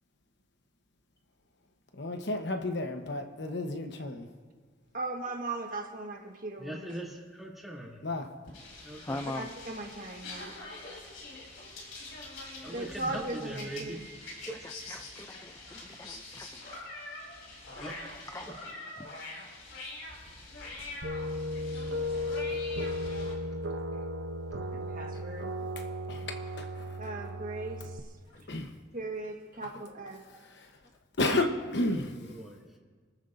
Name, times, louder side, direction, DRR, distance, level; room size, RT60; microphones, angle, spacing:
voice 1, 1.9-4.3 8.0-8.3 26.1-27.0 28.3-28.7 30.6-30.7 31.2-32.3, left 2 dB, 60° left, 5 dB, 1.1 m, -32 dB
voice 2, 4.9-6.9 9.3-10.5 12.6-14.1 24.7-25.7 27.0-28.1 28.5-28.6 28.9-30.3, right 2 dB, 45° right, 2 dB, 1.5 m, -38 dB
voice 3, 6.6-8.0 8.8-9.2 12.6-14.0 14.5-14.6 17.8-18.1 31.9-32.8, right 1 dB, ahead, -5 dB, 2.8 m, -41 dB
sound 1, 8.5-23.3, left 2 dB, 90° left, 5.5 m, -44 dB
voice 4, 9.0-9.5 13.6-16.6 18.3-19.1 28.3-28.4, left 1 dB, 15° left, 5 dB, 0.4 m, -43 dB
sound 2, 21.0-28.0, left 1 dB, 80° right, 0.8 m, -35 dB
28.0 x 13.5 x 2.6 m, 1.5 s
head